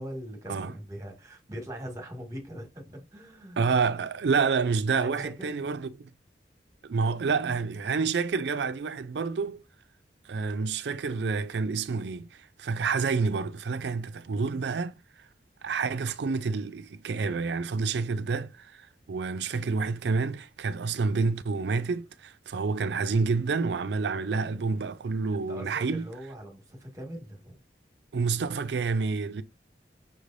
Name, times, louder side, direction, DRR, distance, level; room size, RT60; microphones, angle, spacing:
voice 1, 0.0-3.8 4.9-5.7 25.3-27.6, equal, 20° right, 1.4 m, -41 dB
voice 2, 3.6-6.1 6.8-9.6 10.3-14.9 15.6-26.1 28.1-29.4, right 4 dB, 70° right, 0.4 m, -28 dB
5.9 x 3.2 x 2.5 m
head